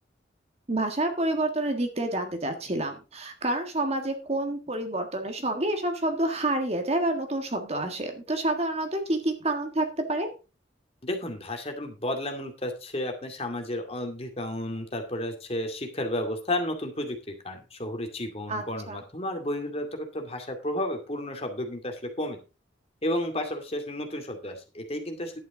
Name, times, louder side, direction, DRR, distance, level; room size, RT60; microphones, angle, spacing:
voice 1, 0.7-10.3 18.5-19.0, right 1 dB, 35° right, 6 dB, 1.7 m, -28 dB
voice 2, 11.0-22.4 23.0-25.4, left 1 dB, 35° left, 4 dB, 2.3 m, -32 dB
11.0 x 9.2 x 3.9 m, 0.31 s
head